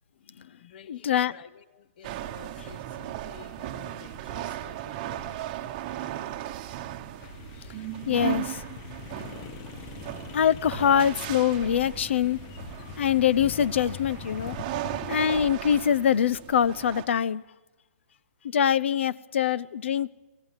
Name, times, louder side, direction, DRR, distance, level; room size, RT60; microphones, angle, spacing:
voice 1, 0.3-5.3 5.9-6.0 6.4-6.8 7.3-7.7, left 8 dB, 40° left, 1.0 m, -52 dB
voice 2, 0.9-1.3 8.1-8.6 10.3-12.4 13.0-14.6 15.1-17.4 18.5-20.1, left 9 dB, 55° left, 0.7 m, -24 dB
sound 1, 2.0-17.1, right 13 dB, 25° right, 1.1 m, -37 dB
sound 2, 7.2-15.4, left 11 dB, 20° left, 0.7 m, -43 dB
27.0 x 17.5 x 7.3 m
hypercardioid pair, 165°, 8 cm